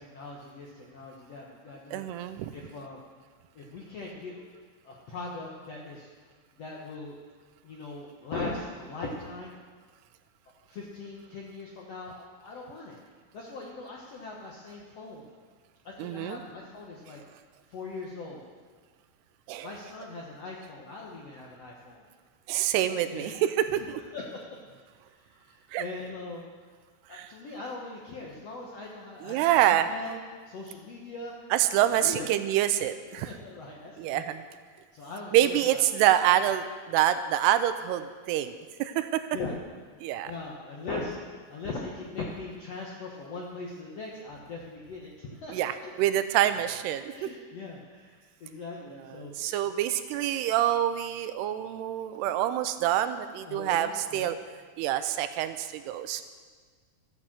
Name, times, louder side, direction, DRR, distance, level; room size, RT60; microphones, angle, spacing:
voice 1, 0.0-2.0 2.5-3.0 3.5-4.4 4.8-6.1 6.6-7.2 7.6-9.5 10.7-13.0 13.3-15.3 15.8-17.2 17.7-18.4 19.6-22.0 23.1-23.4 23.8-23.9 24.1-24.4 25.1-26.5 27.1-29.4 29.7-30.1 30.4-31.3 31.8-32.3 33.1-34.3 34.9-35.8 39.3-39.5 40.2-41.2 41.5-45.5 45.8-45.9 47.1-49.4 53.4-54.3, left 3 dB, 70° left, -2 dB, 1.5 m, -40 dB
voice 2, 1.9-2.5 16.0-16.4 19.5-19.7 22.5-24.0 25.7-25.8 27.1-27.3 29.2-29.9 31.5-33.3 34.0-34.4 35.3-39.3 40.0-40.3 45.5-47.3 49.1-54.4 54.8-56.2, right 12 dB, 85° right, 11 dB, 2.7 m, -26 dB
13.0 x 9.1 x 7.6 m, 1.6 s
omnidirectional pair, 4.8 m